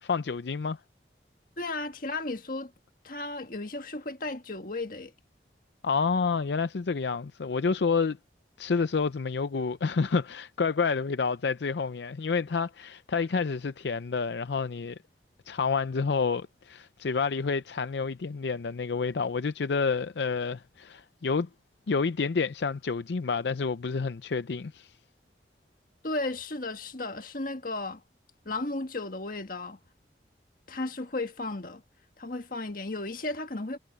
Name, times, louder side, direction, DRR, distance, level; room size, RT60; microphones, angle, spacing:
voice 1, 0.0-0.8 5.8-8.2 8.6-15.0 15.5-21.5 21.9-24.9, left 5 dB, 75° left, 0.5 m, -29 dB
voice 2, 1.6-2.7 3.0-5.1 26.0-28.0 28.4-29.8 30.7-31.8 32.2-33.8, left 2 dB, 50° left, 1.7 m, -34 dB
head